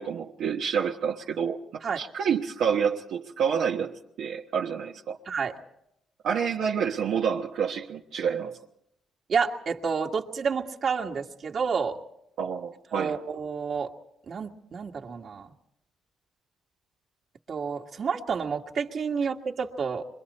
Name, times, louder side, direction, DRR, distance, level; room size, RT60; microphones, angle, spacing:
voice 1, 0.0-5.2 6.2-8.6 12.4-13.2, right 7 dB, 75° right, 1.2 m, -28 dB
voice 2, 5.3-5.6 9.3-12.0 12.9-13.9 14.3-15.5 17.5-20.0, right 6 dB, 50° right, 1.9 m, -29 dB
26.5 x 23.0 x 4.3 m
cardioid pair, 90°, 0 cm